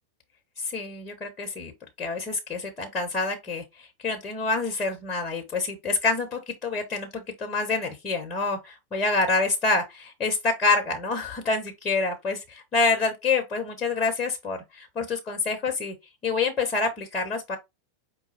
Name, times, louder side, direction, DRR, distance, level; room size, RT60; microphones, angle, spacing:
voice 1, 0.6-1.7 2.0-15.9 16.2-17.6, left 3 dB, 30° left, 1.0 m, -27 dB
5.0 x 2.2 x 4.1 m
figure-of-eight pair, 90°, 0 cm